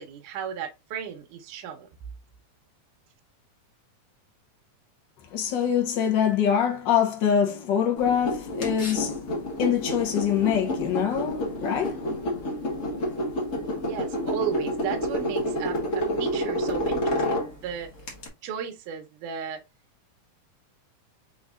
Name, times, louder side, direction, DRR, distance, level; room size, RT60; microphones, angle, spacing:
voice 1, 0.0-1.9 13.8-17.9 18.4-19.6, right 8 dB, 75° right, 2.3 m, -35 dB
voice 2, 5.3-9.2 9.6-12.0, left 8 dB, 85° left, 1.0 m, -24 dB
sound 1, 8.0-18.3, equal, 45° left, 1.0 m, -29 dB
5.1 x 4.0 x 2.3 m
omnidirectional pair, 3.7 m